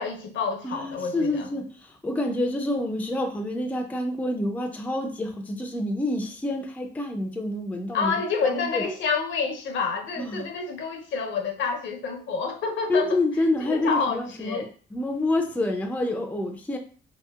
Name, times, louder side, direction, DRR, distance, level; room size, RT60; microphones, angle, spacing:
voice 1, 0.0-1.5 7.9-13.2 13.6-14.7, left 5 dB, 70° left, 3 dB, 0.6 m, -28 dB
voice 2, 0.6-8.1 8.4-8.9 10.2-10.5 12.9-16.8, left 2 dB, 10° left, 4 dB, 0.4 m, -28 dB
2.8 x 2.7 x 2.3 m, 0.42 s
cardioid pair, 90°, 20 cm